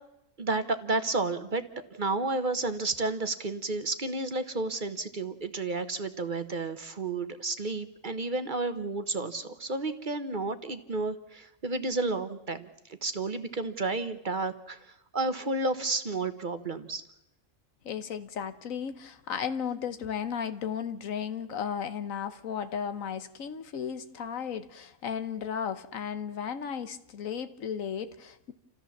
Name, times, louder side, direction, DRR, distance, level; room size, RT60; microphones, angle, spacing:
voice 1, 0.4-1.6 1.9-12.7 13.0-14.8 15.1-17.0, right 3 dB, 40° right, 10 dB, 1.1 m, -31 dB
voice 2, 17.8-28.5, left 7 dB, 85° left, 11 dB, 1.4 m, -35 dB
29.0 x 14.0 x 7.2 m, 0.88 s
omnidirectional pair, 1.4 m